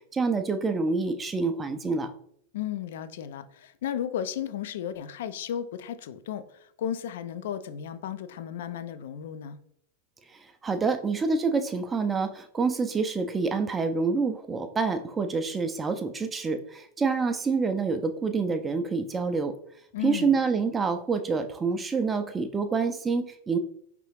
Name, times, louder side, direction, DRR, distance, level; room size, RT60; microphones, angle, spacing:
voice 1, 0.1-2.1 10.3-19.5 20.0-23.6, right 4 dB, 15° right, 8 dB, 0.4 m, -27 dB
voice 2, 2.5-9.6 19.9-20.4, left 9 dB, 55° left, 13 dB, 0.3 m, -34 dB
4.7 x 3.4 x 3.1 m, 0.68 s
figure-of-eight pair, 90°, 0 cm